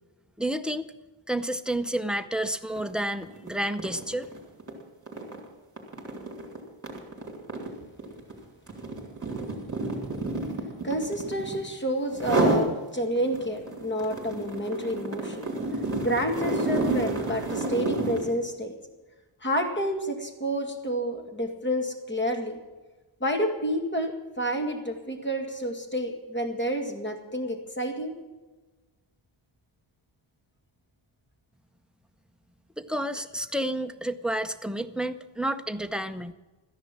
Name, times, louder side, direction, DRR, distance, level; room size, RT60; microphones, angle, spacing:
voice 1, 0.4-0.9 1.3-4.3 32.8-36.3, right 1 dB, ahead, 12 dB, 0.6 m, -30 dB
sound 1, 2.7-2.9 3.2-11.7 12.1-12.7 13.2-18.3, right 2 dB, 30° right, 3.6 m, -30 dB
voice 2, 10.8-15.5 15.7-18.7 19.4-22.6 23.2-28.1, equal, 20° left, 4 dB, 2.1 m, -29 dB
14.0 x 10.5 x 7.5 m, 1.2 s
wide cardioid pair, 135°, 49 cm